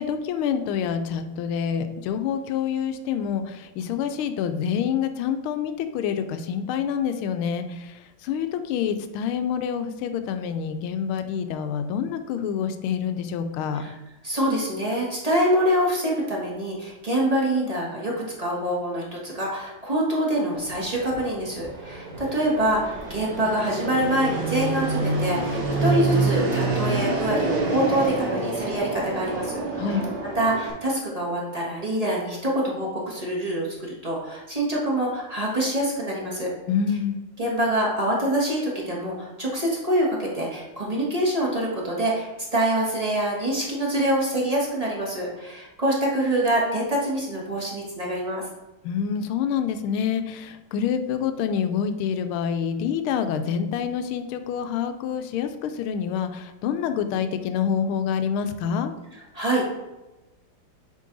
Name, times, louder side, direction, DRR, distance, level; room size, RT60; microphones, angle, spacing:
voice 1, 0.0-13.8 29.7-30.0 36.7-37.2 48.8-58.9, left 7 dB, 85° left, 9 dB, 1.4 m, -27 dB
voice 2, 14.2-29.6 29.9-30.0 30.3-33.7 34.0-36.5 37.4-48.4 59.1-59.7, right 1 dB, 25° right, -4 dB, 0.9 m, -25 dB
Fixed-wing aircraft airplane, 20.5-30.7, right 3 dB, 55° right, 1.6 m, -27 dB
7.5 x 3.3 x 3.9 m, 1.1 s
omnidirectional pair, 2.3 m